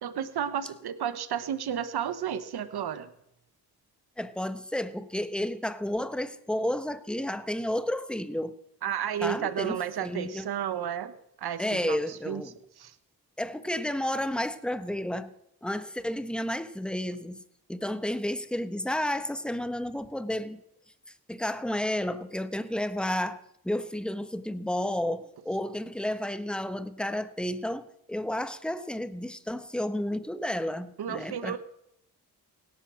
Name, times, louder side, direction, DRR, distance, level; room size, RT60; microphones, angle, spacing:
voice 1, 0.0-3.1 8.8-12.0 12.3-12.4 12.8-12.9 31.0-31.6, right 9 dB, 80° right, 13 dB, 1.2 m, -32 dB
voice 2, 4.2-8.5 9.2-10.5 11.6-12.5 13.4-15.3 15.6-17.4 17.7-20.6 21.1-31.6, left 1 dB, ahead, 12 dB, 1.2 m, -31 dB
17.5 x 10.5 x 6.3 m, 0.78 s
cardioid pair, 60°, 38 cm